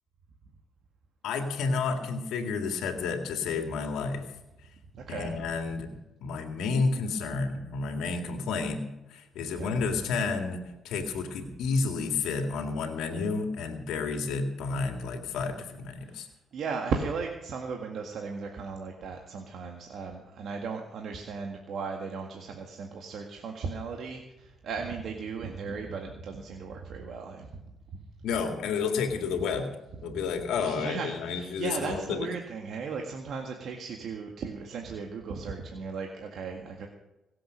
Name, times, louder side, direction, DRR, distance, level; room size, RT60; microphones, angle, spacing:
voice 1, 1.2-4.2 5.1-5.9 6.2-8.8 9.1-16.3 28.2-29.7 30.0-32.3, left 4 dB, 85° left, 5 dB, 2.1 m, -30 dB
voice 2, 4.9-5.4 9.5-9.7 16.5-27.5 30.1-30.2 30.6-36.9, right 5 dB, 70° right, 2 dB, 1.9 m, -36 dB
22.0 x 7.8 x 6.4 m, 0.99 s
cardioid pair, 90°, 0 cm